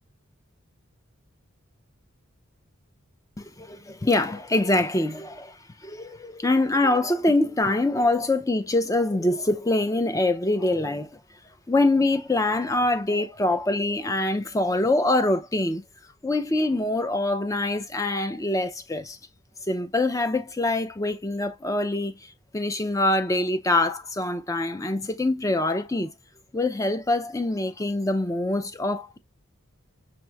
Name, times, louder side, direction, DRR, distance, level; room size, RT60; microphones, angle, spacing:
voice 1, 3.4-11.2 11.7-15.8 16.2-19.2 19.7-22.2 22.5-26.1 26.5-29.2, left 2 dB, 15° left, 0.4 m, -24 dB
6.1 x 2.9 x 2.2 m
head